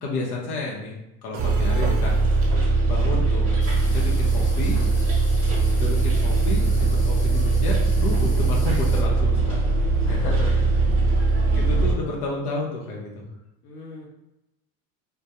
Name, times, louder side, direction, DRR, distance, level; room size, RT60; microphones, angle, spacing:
voice 1, 0.0-1.0 1.2-2.1 2.9-3.5 3.9-4.8 5.8-9.7 10.1-10.2 11.0-11.2 11.6-13.2, left 2 dB, 85° left, -2 dB, 0.7 m, -31 dB
sound 1, 1.3-2.9, right 7 dB, 80° right, 0.5 m, -39 dB
Bus, 1.4-12.0, right 3 dB, 30° right, 0.8 m, -21 dB
voice 2, 2.6-3.0 10.0-10.7 11.1-11.7 12.0-12.2 13.6-14.0, left 2 dB, 40° left, -3 dB, 0.6 m, -38 dB
sound 2, 3.6-9.0, left 2 dB, 55° left, 1.2 m, -44 dB
2.3 x 2.1 x 2.7 m, 0.90 s
hypercardioid pair, 90°, 44 cm